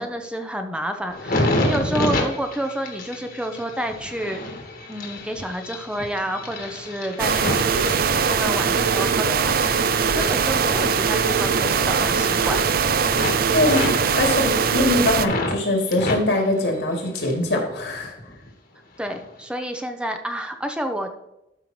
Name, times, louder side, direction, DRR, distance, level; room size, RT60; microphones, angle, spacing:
voice 1, 0.0-4.4 4.9-12.6 19.0-21.1, equal, 5° right, 6 dB, 0.7 m, -29 dB
sound 1, 1.1-8.8 9.2-11.8 12.1-12.8 13.1-15.6 15.9-17.5 17.8-18.5 19.0-19.3, left 1 dB, 55° left, 1.7 m, -29 dB
sound 2, 7.2-15.3, right 6 dB, 55° right, 0.5 m, -21 dB
voice 2, 13.5-13.9 14.2-18.1, left 1 dB, 80° left, 1 dB, 2.8 m, -22 dB
13.0 x 5.5 x 3.2 m, 0.88 s
head